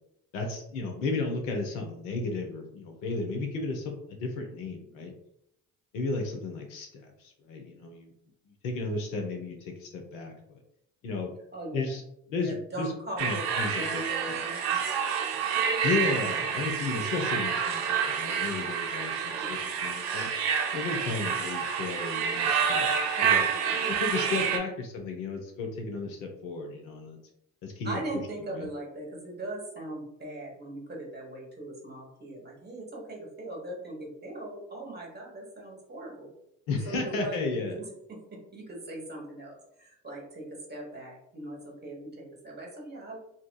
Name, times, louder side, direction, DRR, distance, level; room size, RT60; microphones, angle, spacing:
voice 1, 0.3-5.1 5.9-8.1 8.5-10.6 11.0-11.3 11.7-12.0 12.3-12.9 13.2-14.3 15.8-20.3 20.7-23.4 23.9-27.2 27.6-28.2 28.5-28.7 36.7-37.7, left 3 dB, 80° left, 2 dB, 0.7 m, -34 dB
voice 2, 11.5-12.0 12.4-13.5 13.8-14.8 19.4-19.6 23.2-23.8 27.8-36.3 36.8-38.2 38.5-40.4 40.7-43.2, right 1 dB, 25° right, -1 dB, 1.1 m, -40 dB
sound 1, 13.2-24.6, right 7 dB, 75° right, 0.5 m, -28 dB
2.7 x 2.3 x 2.2 m, 0.75 s
hypercardioid pair, 55°, 40 cm